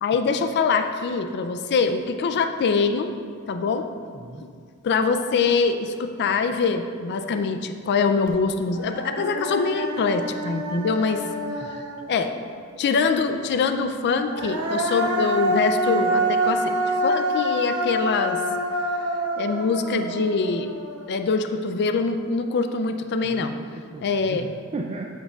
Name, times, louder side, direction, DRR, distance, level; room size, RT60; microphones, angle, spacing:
voice 1, 0.0-3.1 3.5-3.9 4.4-4.5 4.8-11.2 12.1-12.3 12.8-16.8 17.0-18.4 19.4-20.7 21.1-23.6 24.0-24.5, left 4 dB, 50° left, 8 dB, 0.4 m, -24 dB
voice 2, 4.1-4.4 11.6-11.7 23.3-25.1, right 3 dB, 25° right, 0 dB, 0.3 m, -36 dB
Human voice, 8.3-8.4 8.7-12.4 14.0-21.3, right 1 dB, 70° right, 1.0 m, -27 dB
8.8 x 6.4 x 2.3 m, 2.1 s
head